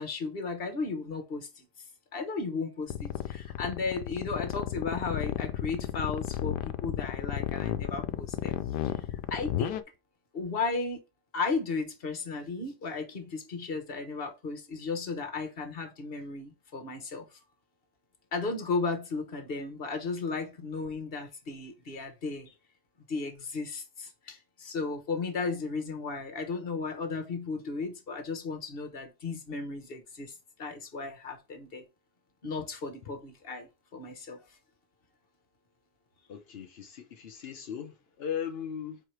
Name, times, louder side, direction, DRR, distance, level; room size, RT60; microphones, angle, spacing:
voice 1, 0.0-1.7 2.1-9.9 10.3-11.0 11.3-17.3 18.3-22.5 23.1-30.3 30.6-31.8 32.4-34.4, left 4 dB, 40° left, 1.2 m, -35 dB
sound 1, 2.9-9.8, left 13 dB, 80° left, 1.2 m, -32 dB
voice 2, 36.3-39.0, left 8 dB, 55° left, 0.7 m, -38 dB
4.7 x 4.7 x 4.6 m
omnidirectional pair, 1.8 m